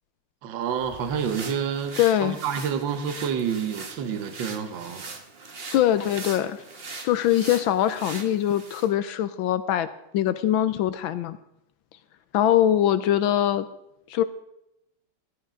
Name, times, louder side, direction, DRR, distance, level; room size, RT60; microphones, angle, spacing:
voice 1, 0.4-5.0, right 7 dB, 65° right, 1.6 m, -29 dB
sound 1, 0.7-8.9, right 4 dB, 35° right, 1.1 m, -41 dB
voice 2, 2.0-2.4 5.7-6.6 7.0-9.9 10.1-11.4 12.3-13.7 14.1-14.2, left 11 dB, 75° left, 1.3 m, -22 dB
16.0 x 11.5 x 3.7 m
omnidirectional pair, 2.3 m